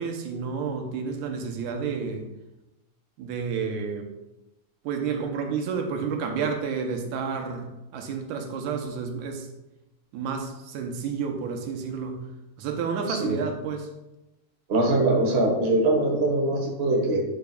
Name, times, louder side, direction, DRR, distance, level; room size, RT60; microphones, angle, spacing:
voice 1, 0.0-2.3 3.2-4.1 4.8-9.5 10.1-12.3 12.6-13.9, right 5 dB, 90° right, 4 dB, 2.2 m, -30 dB
voice 2, 14.7-17.2, right 2 dB, 45° right, -1 dB, 0.8 m, -22 dB
10.5 x 5.0 x 2.3 m, 0.96 s
omnidirectional pair, 3.4 m